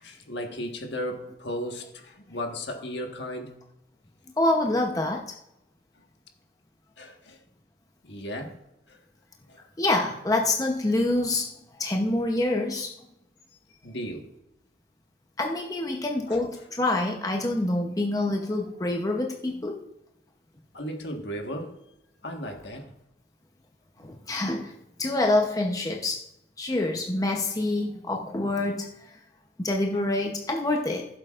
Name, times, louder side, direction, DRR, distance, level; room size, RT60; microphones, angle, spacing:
voice 1, 0.0-3.5 6.0-6.1 7.0-7.4 8.0-8.6 8.9-9.0 9.5-9.6 13.8-14.3 16.3-16.5 20.7-21.8 22.2-22.9, equal, 65° left, 3 dB, 1.5 m, -35 dB
voice 2, 4.4-5.4 9.8-11.5 11.8-12.9 15.4-19.8 24.0-24.7 25.0-26.2 26.6-28.9 29.6-31.1, left 2 dB, 20° left, 1 dB, 0.8 m, -26 dB
15.5 x 7.8 x 2.5 m, 0.85 s
head